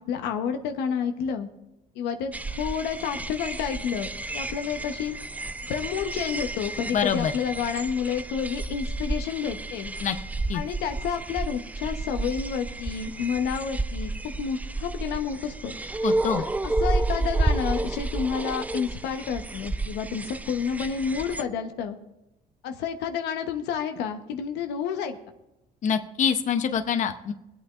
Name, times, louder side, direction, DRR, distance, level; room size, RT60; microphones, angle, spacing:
voice 1, 0.1-1.5 1.9-5.2 5.7-9.9 10.5-15.7 16.4-22.0 22.6-25.2, left 7 dB, 90° left, 5 dB, 1.0 m, -30 dB
sound 1, 2.3-21.4, right 2 dB, 10° right, 0.4 m, -31 dB
voice 2, 6.9-7.3 10.0-10.1 10.5-10.6 16.0-16.4 25.8-27.3, left 7 dB, 45° left, 7 dB, 0.8 m, -25 dB
24.0 x 8.5 x 2.5 m, 0.91 s
cardioid pair, 110°, 17 cm